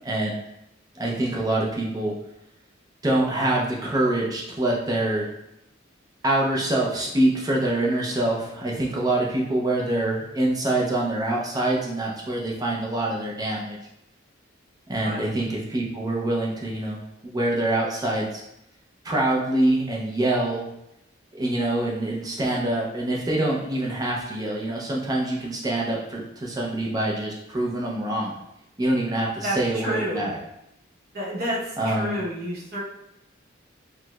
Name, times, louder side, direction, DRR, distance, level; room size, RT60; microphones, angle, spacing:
voice 1, 0.0-0.4 0.9-2.1 3.0-5.3 6.2-13.8 14.9-18.4 19.0-20.6 21.3-28.4 28.8-30.4 31.8-32.2, right 1 dB, 20° right, -2 dB, 0.4 m, -25 dB
voice 2, 29.4-30.3 31.1-32.8, equal, 50° right, -5 dB, 0.9 m, -30 dB
4.4 x 2.0 x 2.2 m, 0.83 s
head